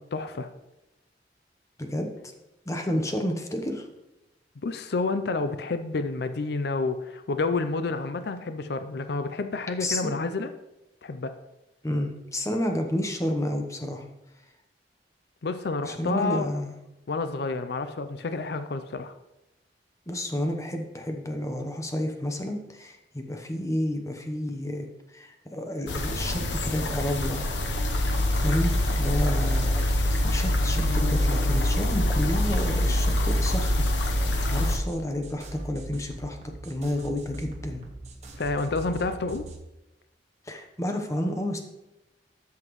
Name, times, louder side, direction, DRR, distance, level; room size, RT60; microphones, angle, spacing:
voice 1, 0.1-0.5 4.6-10.5 11.0-11.3 15.4-16.5 17.1-19.1 38.4-39.4, left 3 dB, 65° left, 9 dB, 0.5 m, -29 dB
voice 2, 1.8-2.1 2.7-3.9 9.8-10.2 11.8-14.1 15.8-16.7 20.1-24.9 25.1-27.4 28.3-33.9 34.5-37.8 40.5-41.6, left 1 dB, 20° left, 4 dB, 0.9 m, -30 dB
sound 1, 25.9-34.8, left 1 dB, 90° left, 0.9 m, -25 dB
sound 2, 28.1-39.6, right 1 dB, 40° right, 1.4 m, -42 dB
13.0 x 5.8 x 3.1 m, 0.94 s
head